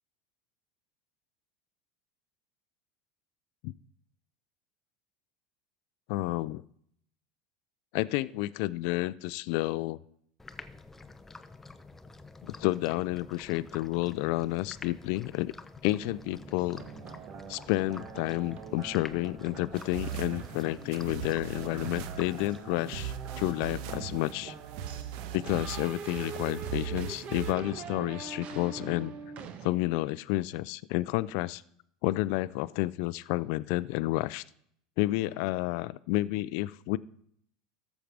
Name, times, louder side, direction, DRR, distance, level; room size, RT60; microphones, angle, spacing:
voice 1, 6.1-6.6 7.9-10.0 12.4-15.5 15.8-16.8 17.5-24.5 25.3-29.1 29.6-31.6 32.0-34.4 35.0-37.0, left 18 dB, 65° left, 18 dB, 0.3 m, -30 dB
sound 1, 10.4-23.1, left 3 dB, 10° left, 0.7 m, -49 dB
sound 2, 16.0-29.7, right 6 dB, 45° right, 1.0 m, -44 dB
sound 3, 19.7-27.5, right 10 dB, 65° right, 0.8 m, -39 dB
13.5 x 7.2 x 3.4 m, 0.67 s
hypercardioid pair, 100°, 3 cm